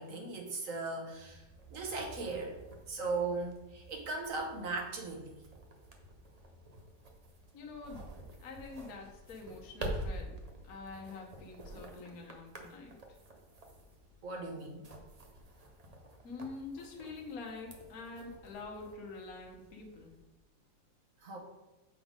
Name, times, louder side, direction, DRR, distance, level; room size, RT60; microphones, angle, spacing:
voice 1, 0.0-2.6 2.9-5.3 14.2-14.8 21.2-21.4, right 3 dB, 50° right, 2 dB, 1.3 m, -38 dB
sound 1, 1.1-20.2, right 1 dB, 85° right, 0.3 m, -48 dB
voice 2, 7.5-8.0 8.4-10.4 10.6-13.0 16.2-20.2, left 3 dB, 55° left, 0 dB, 1.2 m, -46 dB
7.0 x 3.9 x 5.0 m, 1.1 s
omnidirectional pair, 2.1 m